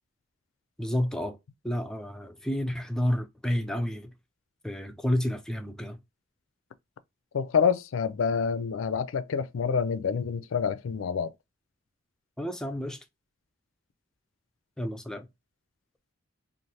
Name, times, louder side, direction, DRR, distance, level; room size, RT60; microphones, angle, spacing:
voice 1, 0.8-1.4 1.6-4.1 4.6-6.0 12.4-13.0 14.8-15.3, equal, 5° left, 0.4 m, -30 dB
voice 2, 7.3-11.3, left 6 dB, 75° left, 0.4 m, -27 dB
3.2 x 2.5 x 2.6 m
head